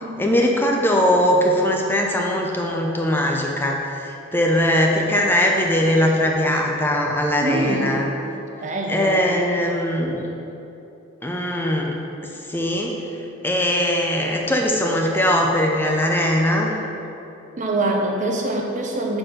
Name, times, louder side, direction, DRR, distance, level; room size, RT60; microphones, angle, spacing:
voice 1, 0.2-8.0 8.9-10.2 11.2-12.0 12.5-12.9 13.4-16.7, left 1 dB, 10° left, 0 dB, 0.5 m, -20 dB
voice 2, 7.4-8.1 8.6-9.4 17.6-19.2, right 2 dB, 40° right, 1 dB, 0.7 m, -24 dB
6.3 x 4.2 x 5.0 m, 2.9 s
head